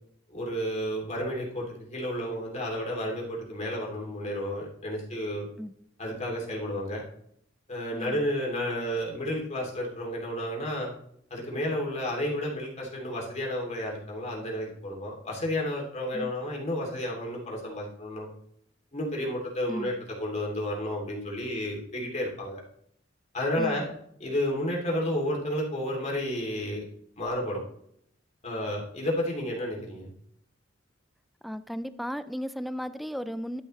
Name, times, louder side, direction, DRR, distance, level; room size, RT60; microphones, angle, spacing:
voice 1, 0.3-5.5 6.0-7.0 7.7-10.9 11.3-18.3 18.9-19.9 20.2-22.6 23.3-23.9 24.2-26.8 27.2-27.6 28.4-30.1, left 1 dB, 35° left, -1 dB, 2.9 m, -31 dB
voice 2, 7.9-8.2 16.1-16.3 19.7-20.0 23.6-23.8 31.4-33.6, equal, ahead, 13 dB, 0.4 m, -35 dB
11.5 x 7.0 x 3.2 m, 0.70 s
head